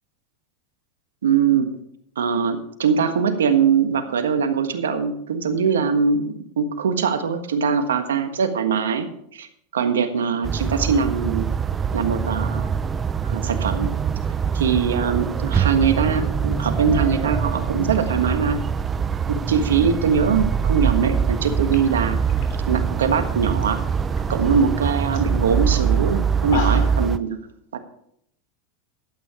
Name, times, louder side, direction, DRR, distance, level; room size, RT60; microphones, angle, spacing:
voice 1, 1.2-1.7 2.2-9.1 9.3-9.5 9.7-11.4 11.9-12.7 13.2-13.9 14.5-18.6 19.3-22.2 22.7-23.8 24.3-27.4 27.7-27.8, right 6 dB, 90° right, 8 dB, 1.4 m, -22 dB
sound 1, 10.4-27.2, right 6 dB, 25° right, 0.6 m, -23 dB
sound 2, 21.3-21.4 21.7-23.6 24.0-24.4 24.8-24.9 25.1-25.3 25.7-25.8 26.3-27.1, left 6 dB, 60° left, 3.0 m, -35 dB
12.5 x 8.8 x 4.9 m, 0.70 s
hypercardioid pair, 105°, 0 cm